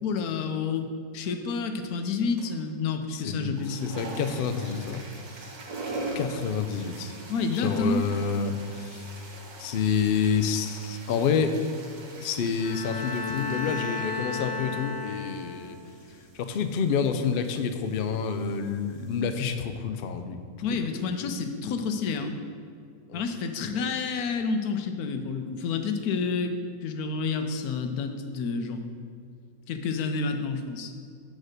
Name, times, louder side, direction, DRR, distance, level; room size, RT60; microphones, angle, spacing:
voice 1, 0.0-0.9 1.1-3.8 7.3-8.1 20.6-22.3 23.1-26.6 26.8-28.8 29.7-30.9, left 4 dB, 85° left, 7 dB, 1.2 m, -29 dB
sound 1, 2.4-2.7 3.4-19.2, right 2 dB, 90° right, 1.6 m, -43 dB
voice 2, 3.1-5.0 6.1-7.1 7.5-9.0 9.6-11.5 12.2-15.8 16.3-20.4 20.7-20.8 23.1-23.2 23.8-23.9, left 6 dB, 65° left, 8 dB, 0.5 m, -28 dB
Bowed string instrument, 12.6-15.8, left 4 dB, 35° left, 1.4 m, -33 dB
6.5 x 4.8 x 6.5 m, 2.2 s
omnidirectional pair, 1.5 m